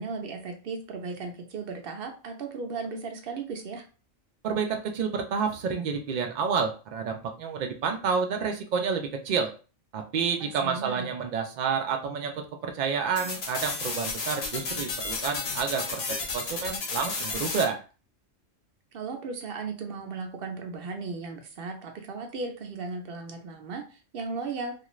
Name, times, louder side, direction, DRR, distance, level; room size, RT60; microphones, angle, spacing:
voice 1, 0.0-3.8 10.4-11.1 18.9-24.7, right 4 dB, 55° right, 3 dB, 0.7 m, -36 dB
voice 2, 4.4-9.5 9.9-17.8, right 6 dB, 90° right, 4 dB, 0.4 m, -29 dB
sound 1, 13.2-17.6, left 3 dB, 60° left, 0.9 m, -32 dB
2.5 x 2.4 x 3.0 m, 0.35 s
omnidirectional pair, 1.4 m